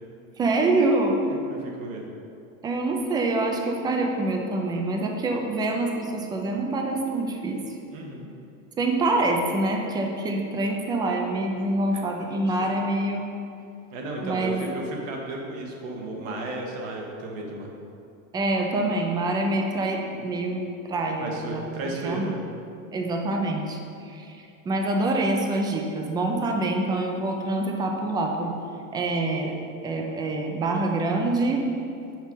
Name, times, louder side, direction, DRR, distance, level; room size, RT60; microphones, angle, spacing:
voice 1, 0.4-1.3 2.6-7.6 8.8-13.3 14.2-14.6 18.3-20.6 20.9-21.6 22.0-22.3 22.9-24.4 24.7-28.5 28.9-29.6 29.8-31.6, right 2 dB, 10° right, 2 dB, 0.3 m, -25 dB
voice 2, 1.5-2.1 7.9-8.3 11.9-12.2 12.6-12.7 13.9-17.7 21.2-22.4, right 2 dB, 80° right, 0 dB, 1.6 m, -34 dB
6.2 x 5.2 x 5.4 m, 2.6 s
supercardioid pair, 155°, 39 cm